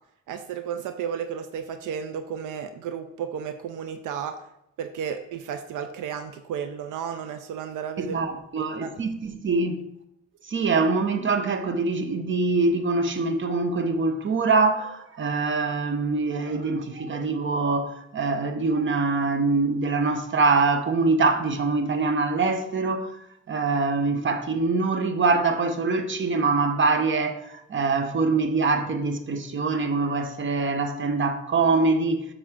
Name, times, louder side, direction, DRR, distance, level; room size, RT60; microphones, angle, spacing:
voice 1, 0.3-4.4 4.8-8.2 8.6-8.9, right 7 dB, 85° right, 0.6 m, -33 dB
voice 2, 8.0-9.8 10.5-23.1 23.5-32.3, right 3 dB, 40° right, 1.1 m, -24 dB
7.5 x 6.6 x 3.7 m
cardioid pair, 90°, 30 cm